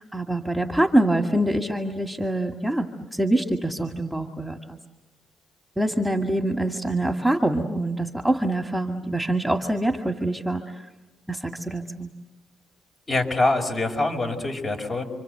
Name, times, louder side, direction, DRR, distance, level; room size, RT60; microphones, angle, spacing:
voice 1, 0.0-4.8 5.8-10.6 11.3-12.1, right 1 dB, ahead, 4 dB, 2.1 m, -25 dB
voice 2, 13.1-15.0, left 2 dB, 35° left, 3 dB, 5.3 m, -24 dB
29.5 x 25.5 x 8.0 m, 1.1 s
cardioid pair, 90°, 0 cm